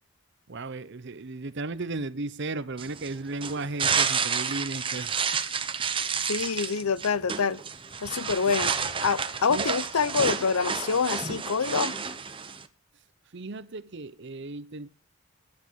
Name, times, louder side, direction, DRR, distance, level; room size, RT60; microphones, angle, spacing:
voice 1, 0.5-5.3 5.8-6.1 9.5-9.7 13.3-14.9, right 3 dB, 55° right, 0.8 m, -35 dB
sound 1, 2.8-12.7, right 6 dB, 25° right, 0.9 m, -30 dB
voice 2, 6.2-7.6 8.0-8.7 9.0-12.0, left 5 dB, 85° left, 0.7 m, -26 dB
14.0 x 10.5 x 4.7 m
head